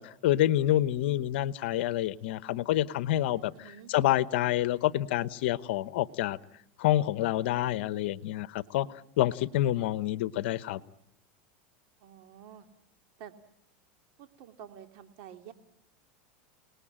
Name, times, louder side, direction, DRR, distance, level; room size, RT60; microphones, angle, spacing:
voice 1, 0.0-6.4 6.8-8.9 9.2-10.8, left 14 dB, 70° left, 1.0 m, -28 dB
voice 2, 3.5-3.9 12.0-12.7 13.2-13.3 14.2-15.5, right 9 dB, 60° right, 2.5 m, -49 dB
29.0 x 19.5 x 8.9 m
supercardioid pair, 115°, 6 cm